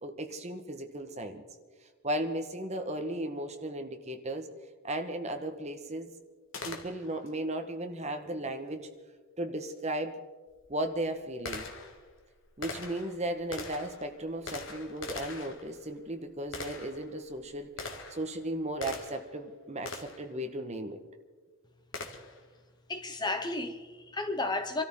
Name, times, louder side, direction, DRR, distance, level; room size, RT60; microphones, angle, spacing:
voice 1, 0.0-1.4 2.0-4.5 4.8-6.1 6.6-8.9 9.4-10.1 10.7-11.7 12.6-17.7 18.1-21.0, right 1 dB, 30° right, 1.3 m, -35 dB
Gunshot gunfire, 6.5-7.3 9.7-9.8 10.5-19.4 19.9-20.3 21.9-22.5, left 3 dB, 60° left, 1.7 m, -43 dB
voice 2, 22.9-24.8, left 2 dB, 20° left, 0.7 m, -33 dB
27.0 x 13.5 x 3.8 m
head